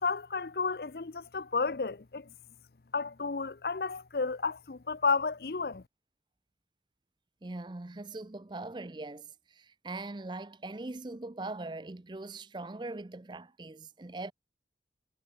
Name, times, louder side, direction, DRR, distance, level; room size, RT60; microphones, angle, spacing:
voice 1, 0.0-2.3 2.9-5.8, left 4 dB, 60° left, 0.7 m, -32 dB
voice 2, 7.4-14.3, right 2 dB, 25° right, 0.5 m, -41 dB
head